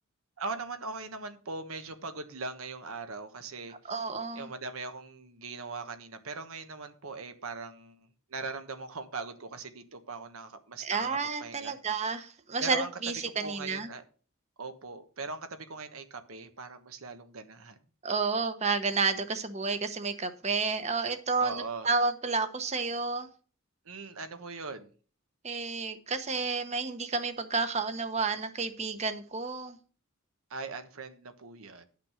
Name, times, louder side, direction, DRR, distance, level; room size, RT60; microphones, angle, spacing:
voice 1, 0.4-3.7 4.3-7.9 8.3-11.8 12.6-12.9 13.4-14.0 14.6-17.8 21.4-21.9 23.9-24.9 30.5-31.8, right 4 dB, 85° right, 8 dB, 1.2 m, -40 dB
voice 2, 3.8-4.5 10.8-13.9 18.0-23.3 25.4-29.8, right 4 dB, 30° right, 10 dB, 0.9 m, -31 dB
10.5 x 5.9 x 5.0 m, 0.40 s
head